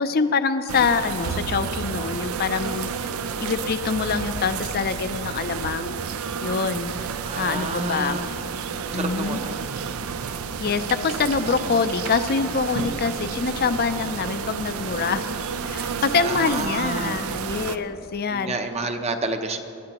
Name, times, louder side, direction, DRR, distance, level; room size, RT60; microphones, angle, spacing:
voice 1, 0.0-2.9 3.4-6.0 6.4-8.2 8.9-9.4 10.6-15.3 15.6-18.6, left 5 dB, 45° left, 11 dB, 0.5 m, -25 dB
sound 1, 0.7-17.8, right 6 dB, 75° right, 0.5 m, -31 dB
sound 2, 3.8-6.9, equal, 80° left, 1.0 m, -42 dB
voice 2, 7.2-8.3 8.9-9.6 16.2-17.2 18.3-19.6, right 2 dB, 30° right, 6 dB, 0.7 m, -29 dB
20.0 x 12.0 x 3.0 m, 2.7 s
head